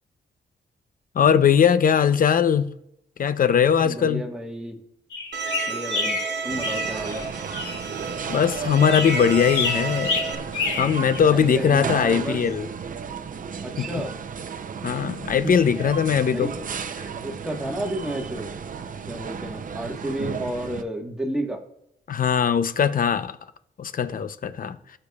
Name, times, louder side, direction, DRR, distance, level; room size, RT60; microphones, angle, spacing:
voice 1, 1.1-2.7 3.2-4.3 8.3-10.4 10.8-12.7 13.8-14.0 14.8-16.5 22.1-23.4 23.8-24.8, left 7 dB, 50° left, 0.6 m, -20 dB
voice 2, 3.8-4.7 5.7-6.2 6.4-7.3 11.3-12.4 13.6-14.1 16.3-16.7 17.2-18.5 19.1-21.6, right 1 dB, 5° right, 1.4 m, -31 dB
sound 1, 5.1-7.9 8.9-11.2, left 4 dB, 90° left, 2.3 m, -28 dB
Bowed string instrument, 5.3-10.4, right 5 dB, 75° right, 0.8 m, -32 dB
sound 2, 6.5-20.8, right 6 dB, 50° right, 0.6 m, -34 dB
17.0 x 6.7 x 2.4 m
cardioid pair, 90°, 18 cm